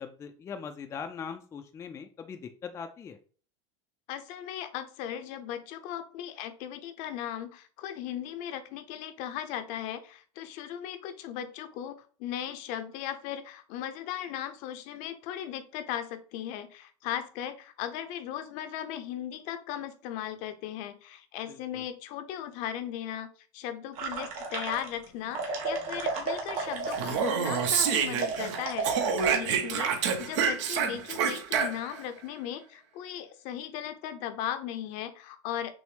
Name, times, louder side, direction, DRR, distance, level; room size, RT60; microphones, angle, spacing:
voice 1, 0.0-3.2 21.5-21.8, left 6 dB, 20° left, 6 dB, 0.3 m, -41 dB
voice 2, 4.1-35.7, left 10 dB, 55° left, 9 dB, 0.6 m, -37 dB
sound 1, 24.0-25.1 25.3-29.4, right 4 dB, 50° right, 1.2 m, -33 dB
Speech, 26.9-28.6 28.8-32.0, right 6 dB, 85° right, 0.8 m, -28 dB
6.1 x 2.0 x 3.2 m, 0.42 s
supercardioid pair, 135°, 15 cm